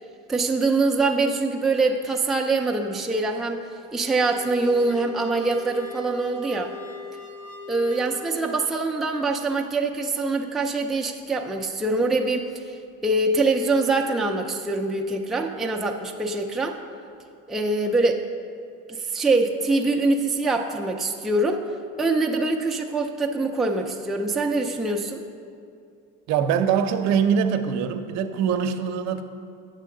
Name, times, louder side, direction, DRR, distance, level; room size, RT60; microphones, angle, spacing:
voice 1, 0.3-3.6 3.9-6.7 7.7-12.8 13.0-16.8 17.5-18.3 18.9-21.7 22.0-25.2, right 3 dB, ahead, 1 dB, 0.3 m, -24 dB
sound 1, 3.9-8.8, left 4 dB, 70° left, 1.2 m, -40 dB
voice 2, 26.3-29.2, right 7 dB, 65° right, 8 dB, 0.6 m, -23 dB
8.2 x 6.7 x 3.7 m, 2.4 s
cardioid pair, 115°, 29 cm